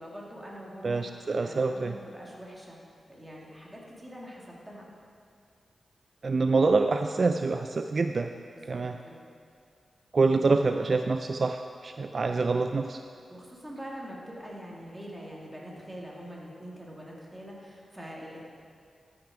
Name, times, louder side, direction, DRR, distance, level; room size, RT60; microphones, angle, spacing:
voice 1, 0.0-1.0 1.3-2.8 3.1-4.9 8.5-9.2 13.3-18.4, equal, 10° right, -4 dB, 2.4 m, -44 dB
voice 2, 0.8-1.9 6.2-8.3 8.7-9.0 10.1-13.0, right 3 dB, 50° right, 7 dB, 0.3 m, -26 dB
12.5 x 6.8 x 4.8 m, 2.3 s
cardioid pair, 70°, 0 cm